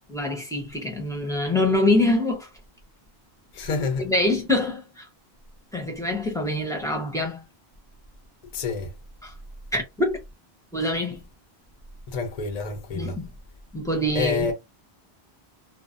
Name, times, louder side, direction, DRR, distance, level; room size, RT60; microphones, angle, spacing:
voice 1, 0.1-2.5 4.0-5.1 5.7-7.4 9.2-9.3 9.7-10.2 10.7-11.2 12.9-13.3 13.7-14.5, left 1 dB, 5° left, 0.6 m, -25 dB
voice 2, 3.5-4.1 8.5-8.9 12.1-13.1 14.2-14.5, left 4 dB, 50° left, 0.6 m, -27 dB
2.4 x 2.1 x 2.5 m
omnidirectional pair, 1.1 m